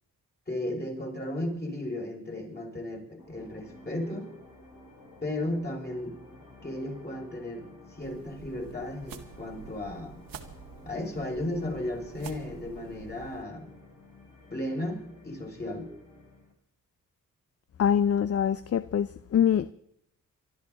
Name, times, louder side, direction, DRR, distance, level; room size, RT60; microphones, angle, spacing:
voice 1, 0.5-4.3 5.2-6.2 6.6-7.7 8.0-10.2 10.8-13.7 14.5-15.9, left 1 dB, 30° left, -1 dB, 5.9 m, -34 dB
sound 1, 3.2-16.5, left 2 dB, 65° left, 7.1 m, -52 dB
sound 2, 8.0-13.4, right 7 dB, 85° right, 1.7 m, -48 dB
voice 2, 17.8-19.7, left 8 dB, 45° left, 16 dB, 0.6 m, -24 dB
24.5 x 12.5 x 4.0 m, 0.72 s
cardioid pair, 75°, 33 cm